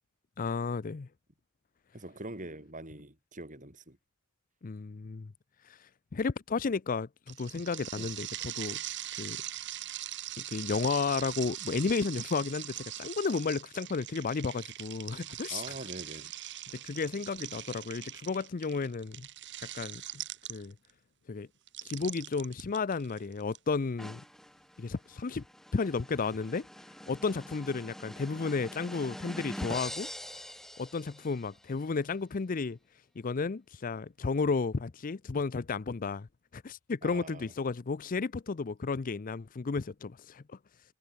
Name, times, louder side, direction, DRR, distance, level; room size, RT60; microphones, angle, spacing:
voice 1, 0.4-1.1 4.6-5.3 5.7-5.8 6.1-8.8 9.2-9.4 10.4-15.6 16.7-19.3 19.7-20.0 20.5-20.7 21.3-21.5 21.8-24.2 24.8-25.4 25.7-26.7 27.1-30.4 30.8-32.8 33.2-36.3 36.5-40.4, left 4 dB, 40° left, 0.5 m, -33 dB
voice 2, 1.9-4.0 8.0-8.1 15.5-16.3 37.0-37.5, right 2 dB, 35° right, 6.8 m, -43 dB
sound 1, 7.3-20.9 21.7-23.6, right 13 dB, 55° right, 1.7 m, -41 dB
sound 2, 24.0-31.6, equal, ahead, 3.7 m, -44 dB
head